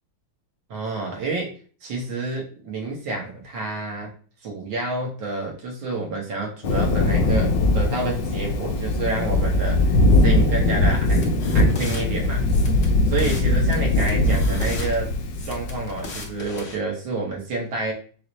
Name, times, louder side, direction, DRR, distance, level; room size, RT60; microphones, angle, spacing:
voice 1, 0.7-1.5 1.8-4.1 4.4-10.0 10.2-12.4 13.1-15.1 15.4-17.9, right 3 dB, 65° right, -1 dB, 1.9 m, -29 dB
Thunder, 6.6-16.3, left 2 dB, 70° left, 1.2 m, -20 dB
sound 1, 11.1-12.0 12.5-13.5 13.7-14.9 15.3-16.8, left 3 dB, 50° left, 0.9 m, -38 dB
4.8 x 2.4 x 4.0 m, 0.41 s
omnidirectional pair, 2.4 m